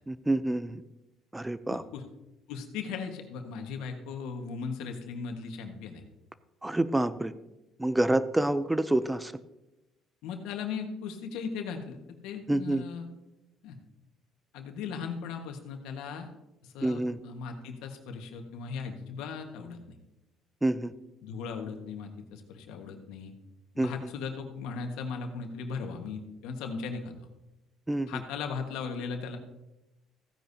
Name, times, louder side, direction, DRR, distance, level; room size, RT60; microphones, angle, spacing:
voice 1, 0.1-0.8 1.3-1.8 6.6-7.3 7.8-9.3 12.5-12.8 16.8-17.2 20.6-20.9 23.8-24.1 27.9-28.2, right 1 dB, 10° right, 14 dB, 0.4 m, -27 dB
voice 2, 1.7-2.0 2.5-6.0 10.2-13.1 13.6-13.8 14.5-16.3 16.6-19.8 21.2-23.3 23.7-27.1 28.1-29.4, left 5 dB, 85° left, 4 dB, 1.4 m, -37 dB
15.5 x 9.8 x 2.7 m, 0.97 s
cardioid pair, 115°, 0 cm